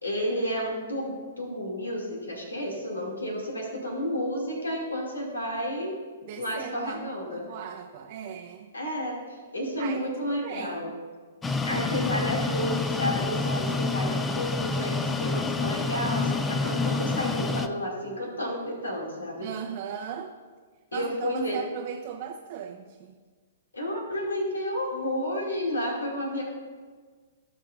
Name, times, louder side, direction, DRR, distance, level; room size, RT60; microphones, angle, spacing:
voice 1, 0.0-6.0 6.4-7.5 8.7-9.2 9.5-10.9 11.6-19.5 20.9-21.6 23.7-26.4, equal, 80° left, -1 dB, 2.4 m, -31 dB
voice 2, 6.2-8.7 9.8-10.9 19.4-20.3 20.9-23.2, right 8 dB, 45° right, 1 dB, 0.7 m, -38 dB
sound 1, 11.4-17.7, left 3 dB, 10° left, 0.5 m, -28 dB
17.0 x 5.9 x 2.5 m, 1.5 s
figure-of-eight pair, 115°, 0 cm